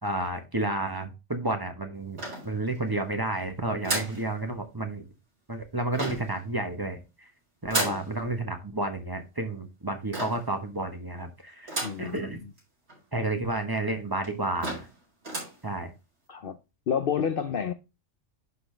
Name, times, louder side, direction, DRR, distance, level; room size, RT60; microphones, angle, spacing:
voice 1, 0.0-5.0 5.5-7.3 7.6-12.4 13.1-14.9 15.6-15.9, right 2 dB, 20° right, 1.1 m, -31 dB
sound 1, 2.2-2.9 3.8-4.3 5.9-6.4 7.7-8.1 10.1-10.5 11.7-12.1 12.6-12.7 12.9-13.0 13.7-13.8 14.2-14.3 14.6-15.0 15.2-15.6, right 1 dB, 65° right, 5.1 m, -32 dB
voice 2, 11.8-12.2 16.3-16.6 16.9-17.7, left 7 dB, 60° left, 0.7 m, -29 dB
11.0 x 4.1 x 3.2 m
omnidirectional pair, 1.2 m